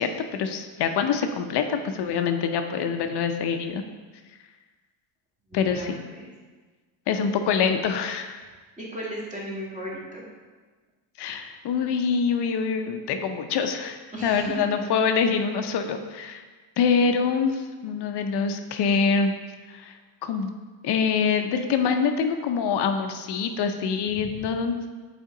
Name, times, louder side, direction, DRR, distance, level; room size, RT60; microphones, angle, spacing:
voice 1, 0.0-3.8 5.5-6.0 7.1-8.4 11.2-16.4 16.8-19.3 19.7-19.9 20.2-20.5 20.8-24.8, left 6 dB, 55° left, 6 dB, 0.7 m, -25 dB
voice 2, 5.5-6.3 8.8-10.2 14.1-14.7, right 1 dB, 15° right, -5 dB, 1.5 m, -36 dB
8.2 x 4.3 x 3.7 m, 1.4 s
cardioid pair, 155°, 49 cm